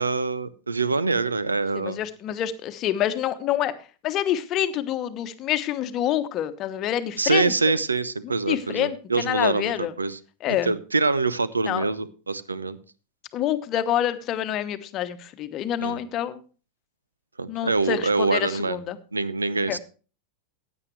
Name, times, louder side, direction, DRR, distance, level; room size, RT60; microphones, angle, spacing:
voice 1, 0.0-2.0 7.2-10.2 10.5-12.8 15.8-16.0 17.4-18.8 19.1-19.8, right 3 dB, 80° right, 18 dB, 0.7 m, -25 dB
voice 2, 1.7-3.7 4.0-7.8 8.5-9.9 10.4-10.7 11.7-11.9 13.3-16.4 17.5-19.0 19.7-19.8, left 11 dB, 35° left, 11 dB, 1.0 m, -27 dB
15.5 x 9.5 x 3.2 m, 0.36 s
figure-of-eight pair, 90°, 0 cm